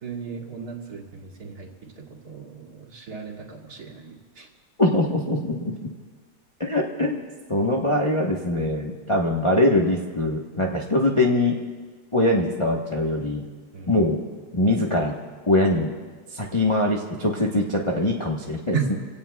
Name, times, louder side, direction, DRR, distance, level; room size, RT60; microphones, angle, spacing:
voice 1, 0.0-1.7 2.0-4.5 13.7-14.0 18.7-18.9, right 6 dB, 45° right, -3 dB, 2.6 m, -34 dB
voice 2, 4.8-5.9 6.6-7.2 7.5-11.6 12.1-13.4 13.9-14.2 14.5-15.1 15.5-15.9 16.3-18.9, left 1 dB, 20° left, -2 dB, 0.8 m, -22 dB
28.0 x 17.0 x 2.3 m, 1.5 s
omnidirectional pair, 2.2 m